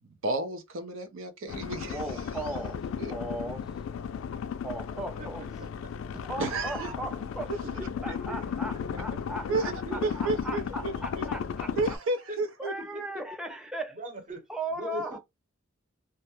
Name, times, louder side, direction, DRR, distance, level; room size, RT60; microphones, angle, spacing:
voice 1, 0.2-2.0 3.0-3.1 6.4-6.9 7.5-7.6 9.5-9.7 10.0-11.3 11.8-12.7, right 3 dB, 75° right, 0.6 m, -31 dB
sound 1, 1.5-12.0, left 7 dB, 75° left, 0.3 m, -35 dB
voice 2, 1.9-2.8 3.1-3.7 4.6-5.4 6.2-7.5 8.0-11.7 12.6-14.0 14.5-15.2, right 1 dB, 5° right, 0.4 m, -37 dB
voice 3, 7.6-8.4 9.6-10.5 12.8-13.0 13.9-14.5 14.8-15.2, right 1 dB, 40° right, 0.9 m, -40 dB
2.3 x 2.1 x 2.9 m
head